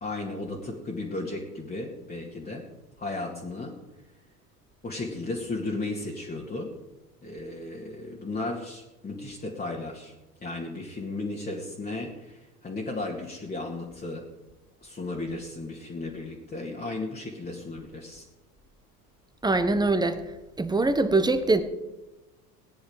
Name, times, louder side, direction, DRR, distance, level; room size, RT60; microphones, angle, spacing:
voice 1, 0.0-2.7 3.0-3.8 4.8-6.7 7.2-10.1 10.4-14.3 14.8-18.2, left 2 dB, 20° left, -3 dB, 2.3 m, -35 dB
voice 2, 19.4-20.2 20.6-21.6, right 2 dB, 10° right, 9 dB, 1.3 m, -23 dB
18.0 x 9.9 x 5.1 m, 1.0 s
figure-of-eight pair, 75°, 47 cm